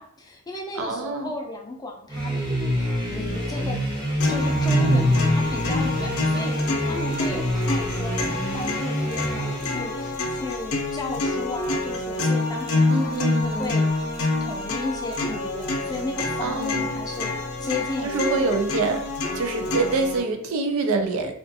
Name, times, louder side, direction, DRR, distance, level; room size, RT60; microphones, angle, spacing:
voice 1, 0.0-3.8 4.3-18.5, left 2 dB, 20° left, 1 dB, 0.4 m, -35 dB
voice 2, 0.8-1.3 12.9-13.8 16.4-16.8 18.0-19.1 19.3-21.3, right 3 dB, 75° right, 5 dB, 0.4 m, -25 dB
sound 1, 2.1-9.9, equal, 20° right, 0.7 m, -26 dB
sound 2, 4.2-20.2, left 2 dB, 85° left, 0.5 m, -27 dB
2.4 x 2.3 x 2.6 m, 0.67 s
head